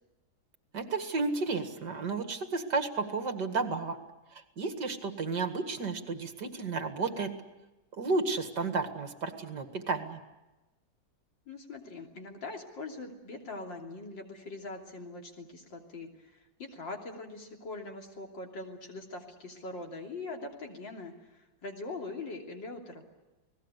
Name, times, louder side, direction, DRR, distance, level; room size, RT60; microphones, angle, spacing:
voice 1, 0.7-4.0 4.3-7.3 8.0-10.2, right 4 dB, 65° right, 7 dB, 2.6 m, -32 dB
voice 2, 11.5-23.1, left 3 dB, 85° left, 1 dB, 3.8 m, -42 dB
29.5 x 19.5 x 8.2 m, 1.1 s
omnidirectional pair, 2.0 m